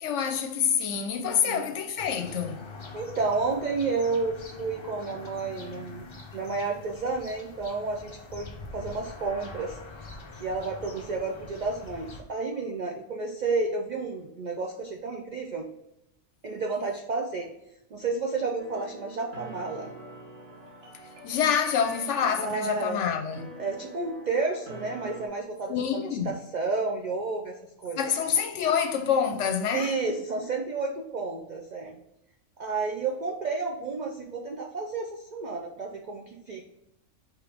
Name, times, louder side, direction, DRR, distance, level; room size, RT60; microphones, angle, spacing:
voice 1, 0.0-2.6 21.2-23.5 25.7-26.3 28.0-29.9, left 7 dB, 70° left, 0.8 m, -27 dB
voice 2, 1.2-1.7 2.9-9.8 10.3-15.7 16.4-17.5 17.9-19.9 22.4-23.0 23.6-28.0 29.7-32.0 32.6-36.6, right 3 dB, 70° right, 0.4 m, -31 dB
sound 1, 2.0-12.2, left 3 dB, 45° left, 0.3 m, -44 dB
sound 2, 18.6-25.3, equal, 50° right, 1.2 m, -45 dB
5.0 x 3.0 x 3.4 m
omnidirectional pair, 1.4 m